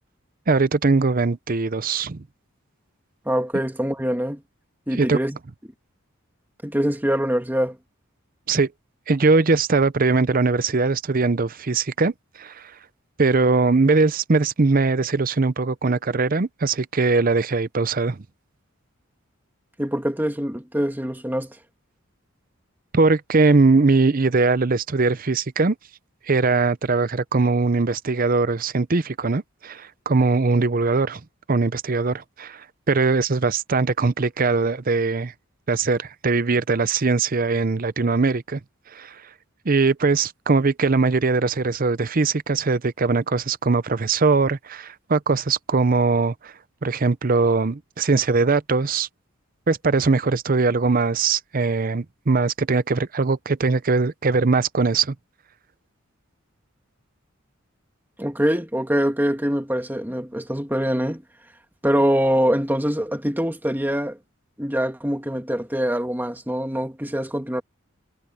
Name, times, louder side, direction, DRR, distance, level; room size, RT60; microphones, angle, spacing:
voice 1, 0.5-2.2 4.9-5.2 8.5-8.7 9.1-12.1 12.4-12.7 13.2-18.2 22.9-25.8 26.3-31.2 31.5-35.3 35.7-38.6 38.9-39.2 39.7-46.5 46.8-49.1 49.7-55.1, right 3 dB, 40° right, 0.7 m, -21 dB
voice 2, 3.3-4.4 4.9-5.4 6.6-7.8 19.8-21.6 58.2-61.2 61.8-64.2 64.6-67.6, equal, 10° right, 2.1 m, -24 dB
head